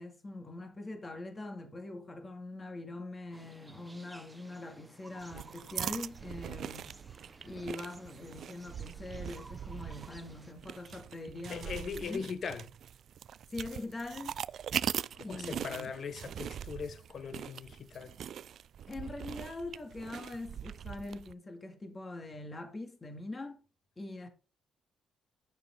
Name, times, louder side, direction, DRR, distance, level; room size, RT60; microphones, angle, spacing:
voice 1, 0.0-7.0 7.4-12.2 13.5-14.4 15.2-15.9 18.9-23.6 24.0-24.3, left 2 dB, 25° left, 2.2 m, -43 dB
sound 1, 3.3-10.5, right 2 dB, 15° right, 1.0 m, -56 dB
sound 2, 5.2-21.3, right 9 dB, 65° right, 0.3 m, -41 dB
voice 2, 11.5-12.7 15.3-18.1, left 6 dB, 55° left, 1.1 m, -40 dB
11.0 x 6.6 x 3.7 m
cardioid pair, 90°, 0 cm